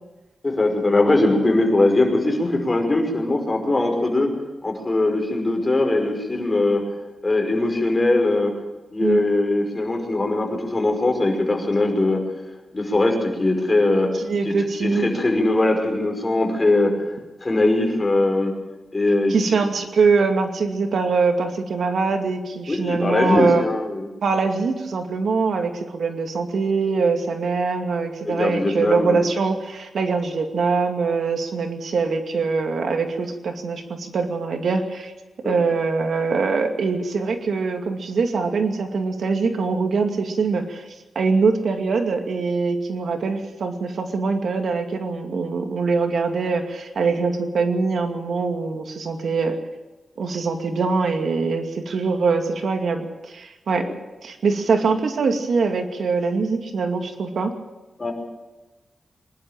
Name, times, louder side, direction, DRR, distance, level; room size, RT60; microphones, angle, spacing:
voice 1, 0.4-4.3 4.6-6.8 7.2-8.5 8.9-12.2 12.7-14.1 14.4-14.5 14.8-17.0 17.4-18.6 18.9-19.4 22.7-24.1 28.2-29.2 35.4-35.5 53.7-53.9 58.0-58.1, left 2 dB, 25° left, 2 dB, 5.5 m, -21 dB
voice 2, 14.2-15.1 19.3-23.6 24.2-35.1 35.4-40.8 41.1-49.5 50.2-53.9 54.2-57.5, right 4 dB, 75° right, 4 dB, 2.4 m, -23 dB
24.0 x 12.0 x 9.1 m, 1.1 s
wide cardioid pair, 105°, 0 cm